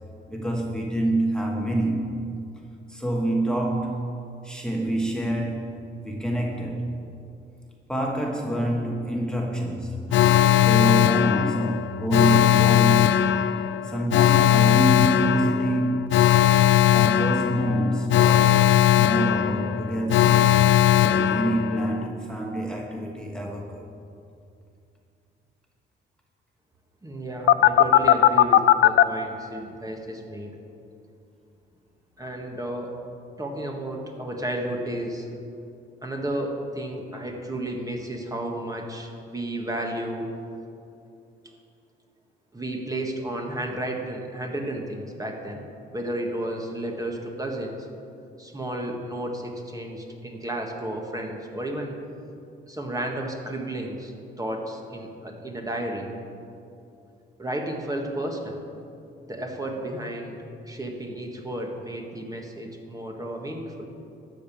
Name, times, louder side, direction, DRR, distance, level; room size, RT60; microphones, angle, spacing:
voice 1, 0.3-2.3 2.9-4.0 4.4-6.9 7.9-13.3 13.8-16.2 16.9-20.7 20.9-23.9, right 1 dB, 5° left, -1 dB, 1.3 m, -27 dB
Alarm, 10.1-22.0 27.5-29.0, left 12 dB, 75° left, 0.4 m, -19 dB
voice 2, 27.0-30.5 32.2-33.0 33.4-35.3 36.0-40.3 42.5-45.6 45.9-47.8 48.4-51.9 52.7-54.1 54.4-56.1 57.4-58.6 59.3-60.4 60.6-63.9, right 1 dB, 20° right, 1 dB, 1.6 m, -32 dB
13.0 x 5.2 x 8.6 m, 2.6 s
cardioid pair, 90°, 20 cm